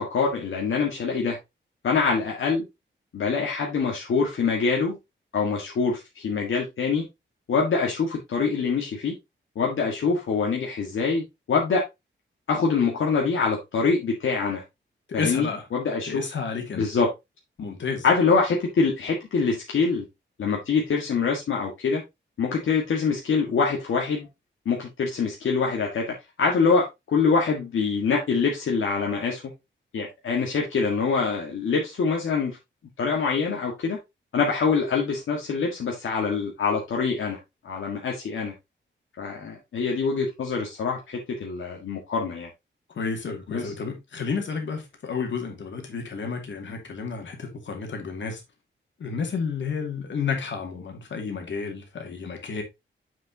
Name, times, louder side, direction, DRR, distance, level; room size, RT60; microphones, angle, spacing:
voice 1, 0.0-1.4 1.8-2.6 3.1-5.0 5.3-7.1 7.5-9.1 9.6-11.8 12.5-14.6 15.1-16.3 16.8-17.1 18.0-20.0 20.4-22.0 22.4-24.3 24.7-29.5 29.9-32.6 33.0-34.0 34.3-37.4 37.6-38.5 39.2-42.5 43.5-43.7, left 5 dB, 85° left, 1.8 m, -25 dB
voice 2, 15.1-15.6 16.1-16.9 17.6-18.0 42.9-48.4 49.0-52.6, left 5 dB, 70° left, 2.4 m, -31 dB
7.3 x 6.5 x 2.8 m
wide cardioid pair, 140°, 20 cm